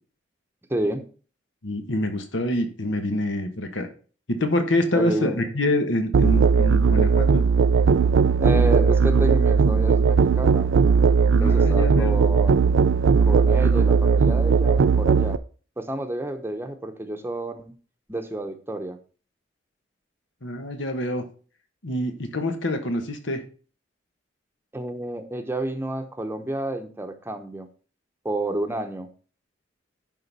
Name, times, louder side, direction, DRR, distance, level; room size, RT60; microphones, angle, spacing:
voice 1, 0.7-1.1 4.9-5.5 8.4-10.7 11.2-12.8 13.3-15.4 15.8-17.7 18.1-19.0 24.7-27.7 28.2-29.1, right 1 dB, 15° right, 6 dB, 0.8 m, -30 dB
voice 2, 1.6-3.9 4.3-7.4 11.3-12.2 20.4-21.2 21.8-23.4, left 1 dB, 85° left, 6 dB, 1.4 m, -26 dB
Musical instrument, 6.1-15.4, right 5 dB, 90° right, 0.4 m, -18 dB
11.0 x 3.9 x 5.3 m, 0.39 s
head